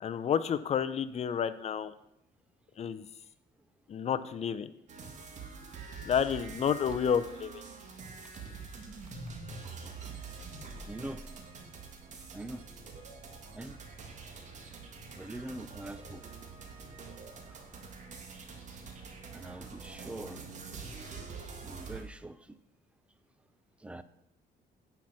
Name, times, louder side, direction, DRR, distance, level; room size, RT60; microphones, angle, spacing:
voice 1, 0.0-1.9 2.8-3.0 3.9-4.7 6.0-7.6, left 8 dB, 40° left, 12 dB, 0.6 m, -30 dB
sound 1, 4.9-22.0, right 4 dB, 45° right, 1.8 m, -45 dB
voice 2, 10.9-11.2 12.3-12.6 13.5-13.8 14.5-14.7 15.1-16.2 17.5-17.6 19.3-20.5 21.6-22.6 23.8-24.0, right 1 dB, 5° right, 13 dB, 0.5 m, -43 dB
9.0 x 5.8 x 6.0 m, 0.80 s
cardioid pair, 110°, 17 cm